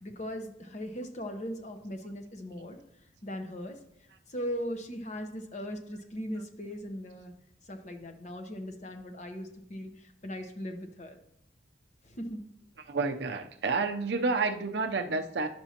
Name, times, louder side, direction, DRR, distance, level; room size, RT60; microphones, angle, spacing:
voice 1, 0.0-2.8 3.2-3.8 4.3-7.3 7.7-11.2 12.1-12.4, equal, 40° left, 5 dB, 0.8 m, -39 dB
voice 2, 12.8-15.5, right 4 dB, 70° right, 6 dB, 0.6 m, -30 dB
10.5 x 6.0 x 2.9 m, 0.77 s
head